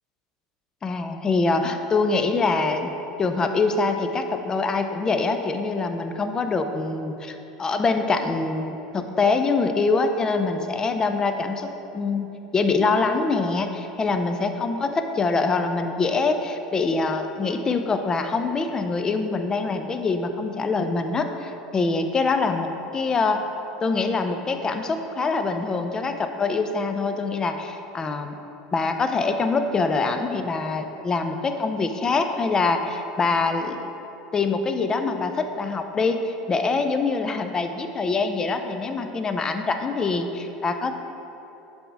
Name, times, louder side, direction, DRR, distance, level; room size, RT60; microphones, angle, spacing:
voice 1, 0.8-2.9 3.2-12.3 12.5-23.4 23.8-28.4 28.7-33.9 34.3-40.9, left 4 dB, 25° left, 7 dB, 0.5 m, -24 dB
7.8 x 3.5 x 4.6 m, 2.9 s
hypercardioid pair, 90°, 3 cm